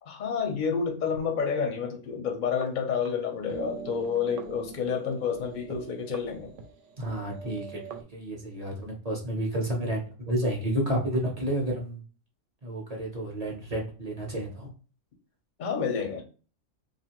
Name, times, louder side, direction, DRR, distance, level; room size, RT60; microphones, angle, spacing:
voice 1, 0.0-6.5 15.6-16.2, left 6 dB, 55° left, 0.6 m, -29 dB
sound 1, 2.4-3.2 3.5-8.0, right 6 dB, 70° right, 0.9 m, -43 dB
voice 2, 7.0-12.0 12.6-14.7, right 1 dB, 40° right, 0.6 m, -31 dB
2.6 x 2.4 x 2.9 m
omnidirectional pair, 1.4 m